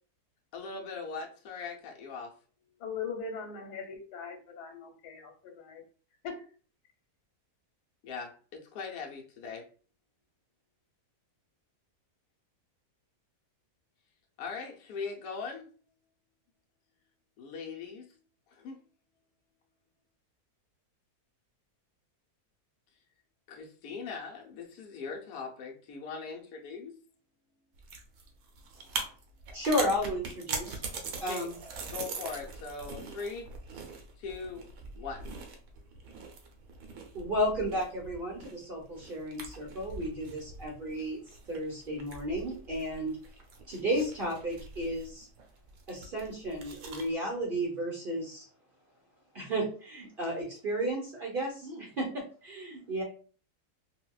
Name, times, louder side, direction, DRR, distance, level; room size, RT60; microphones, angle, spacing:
voice 1, 0.5-2.4 2.7-2.8 8.0-9.7 14.4-15.7 17.4-18.8 23.5-27.0 31.3-31.5 31.8-33.5 34.2-35.3, left 5 dB, 70° left, 1.1 m, -40 dB
voice 2, 2.8-5.8 6.2-6.5, left 5 dB, 90° left, 1.3 m, -40 dB
sound 1, 27.7-47.1, right 4 dB, 70° right, 1.0 m, -42 dB
voice 3, 29.5-30.9 31.2-31.5 37.1-43.2 43.7-45.3 45.9-48.5 49.3-53.0, equal, 50° right, 0.7 m, -33 dB
3.9 x 2.1 x 2.2 m
omnidirectional pair, 1.7 m